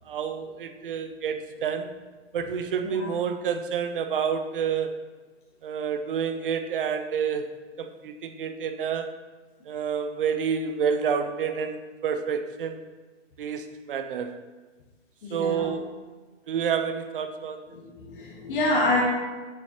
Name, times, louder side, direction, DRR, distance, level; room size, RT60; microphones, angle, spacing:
voice 1, 0.1-1.9 2.3-4.9 5.6-7.4 7.8-9.1 9.6-12.9 13.4-14.3 15.3-15.9 16.5-17.6, right 7 dB, 50° right, 8 dB, 0.6 m, -29 dB
voice 2, 15.2-15.7 17.7-17.8 18.1-19.0, left 2 dB, 45° left, -4 dB, 1.3 m, -26 dB
6.9 x 6.1 x 2.8 m, 1.3 s
figure-of-eight pair, 130°, 35 cm